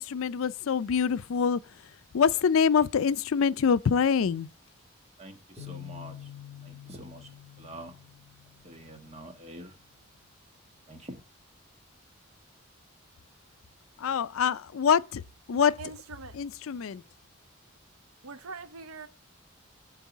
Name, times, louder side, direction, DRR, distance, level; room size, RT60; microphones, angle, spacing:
voice 1, 0.0-1.6 2.1-4.5 14.0-15.2 15.5-15.7 16.3-17.0, left 6 dB, 75° left, 0.4 m, -25 dB
voice 2, 5.2-6.2 6.6-7.3 7.6-7.9 8.6-9.7 10.9-11.2, right 1 dB, 30° right, 1.3 m, -45 dB
sound 1, 5.6-9.3, left 10 dB, ahead, 2.4 m, -47 dB
voice 3, 15.5-16.4 18.2-19.1, right 4 dB, 85° right, 0.8 m, -42 dB
7.5 x 4.7 x 7.1 m
head